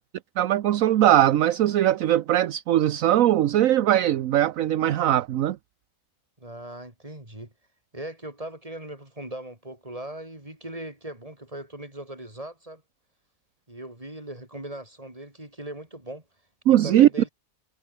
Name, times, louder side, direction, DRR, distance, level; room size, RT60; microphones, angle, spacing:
voice 1, 0.4-5.6 16.7-17.1, right 12 dB, 70° right, 1.1 m, -20 dB
voice 2, 6.4-7.5 7.9-12.8 13.7-16.2 16.7-17.3, right 1 dB, 25° right, 5.1 m, -39 dB
omnidirectional pair, 1.5 m